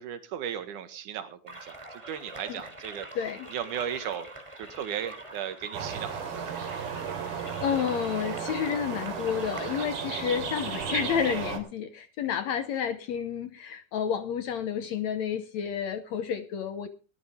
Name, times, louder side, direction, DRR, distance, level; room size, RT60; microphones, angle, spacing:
voice 1, 0.0-1.8 2.1-3.1 3.5-4.3 4.6-6.5, right 9 dB, 65° right, 9 dB, 3.0 m, -36 dB
sound 1, 1.5-9.8, right 2 dB, 10° right, 2.4 m, -44 dB
voice 2, 3.2-3.5 7.3-16.9, left 8 dB, 70° left, 10 dB, 1.8 m, -30 dB
sound 2, 5.7-11.6, right 6 dB, 80° right, 5.0 m, -34 dB
20.5 x 12.5 x 3.6 m, 0.36 s
omnidirectional pair, 4.2 m